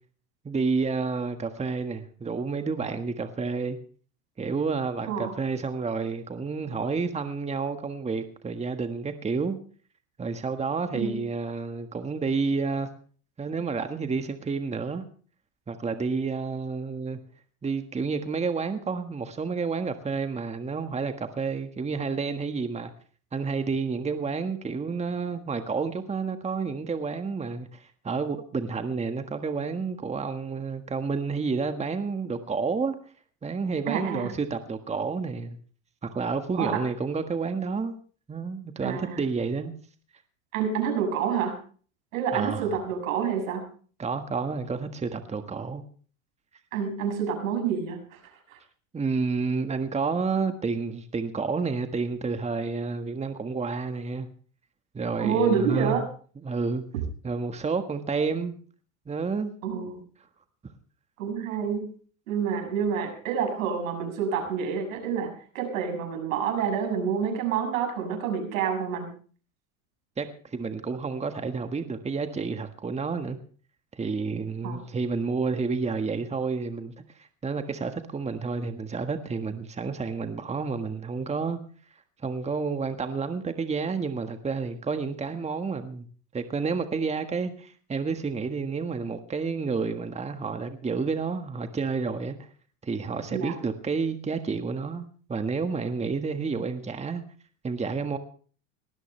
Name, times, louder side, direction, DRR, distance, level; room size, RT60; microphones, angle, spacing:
voice 1, 0.4-3.8 4.4-9.6 10.2-12.9 13.4-15.0 15.7-17.2 17.6-22.9 23.3-32.9 33.4-35.6 36.0-38.0 38.3-39.7 42.3-42.7 44.0-45.8 48.9-54.3 54.9-56.0 56.4-56.8 57.2-58.5 59.1-59.5 70.2-73.4 73.9-81.6 82.2-86.1 86.3-92.5 92.8-97.2 97.6-98.2, right 4 dB, 15° right, 1.6 m, -30 dB
voice 2, 33.9-34.3 36.6-36.8 38.8-39.2 40.5-41.6 42.1-43.6 46.7-48.2 55.2-56.0 59.6-60.0 61.2-61.9 62.3-69.1 74.6-74.8 93.3-93.5, right 7 dB, 80° right, 6.7 m, -28 dB
19.0 x 17.5 x 3.3 m
supercardioid pair, 100°, 40 cm